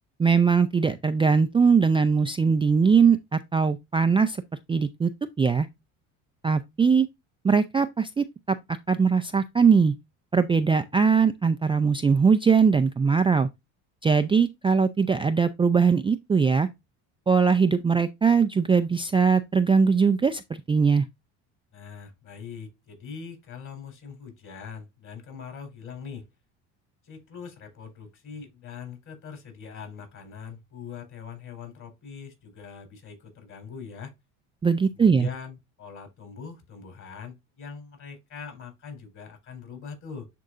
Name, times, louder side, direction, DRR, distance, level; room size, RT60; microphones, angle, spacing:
voice 1, 0.2-4.4 4.7-5.1 5.4-5.7 6.4-7.1 7.4-9.9 10.3-13.5 14.0-16.7 17.3-21.1 34.6-35.3, right 5 dB, 15° right, 0.4 m, -21 dB
voice 2, 21.7-26.3 27.0-34.1 34.9-40.3, left 6 dB, 50° left, 4.0 m, -42 dB
10.5 x 3.7 x 2.5 m
supercardioid pair, 80°, 38 cm